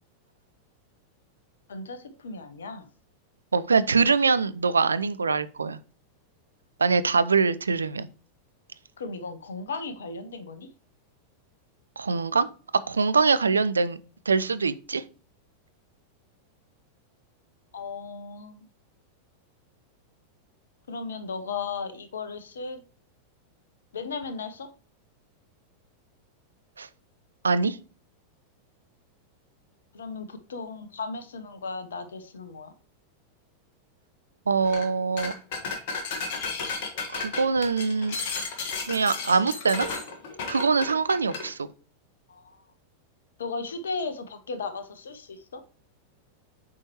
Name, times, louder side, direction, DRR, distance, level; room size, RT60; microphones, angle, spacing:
voice 1, 1.7-2.9 9.0-10.7 17.7-18.6 20.9-22.8 23.9-24.7 29.9-32.7 42.3-42.6 43.4-45.6, left 4 dB, 65° left, 0.7 m, -36 dB
voice 2, 3.5-5.8 6.8-8.1 12.0-12.5 12.9-14.0 14.3-15.0 26.8-26.9 27.4-27.8 34.5-35.3 37.1-38.2 38.9-39.9 40.5-41.6, right 4 dB, 75° right, 0.3 m, -23 dB
sound 1, 34.6-34.9 35.2-41.5, left 4 dB, 50° left, 1.4 m, -33 dB
7.2 x 4.4 x 3.0 m
figure-of-eight pair, 90°, 0 cm